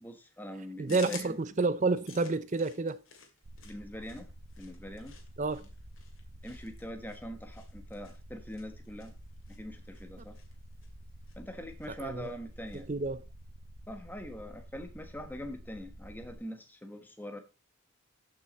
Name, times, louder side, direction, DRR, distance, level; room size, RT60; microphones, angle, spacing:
voice 1, 0.0-1.4 3.6-4.3 4.6-5.1 6.4-9.1 9.5-10.4 11.4-12.9 13.9-17.4, equal, 10° left, 1.2 m, -43 dB
voice 2, 0.8-3.0 5.4-5.7 12.0-12.3 12.7-13.2, right 3 dB, 35° right, 0.6 m, -30 dB
sound 1, 0.9-12.9, left 6 dB, 65° left, 2.5 m, -54 dB
sound 2, 3.4-16.4, equal, 60° right, 1.1 m, -50 dB
13.0 x 6.2 x 4.2 m
head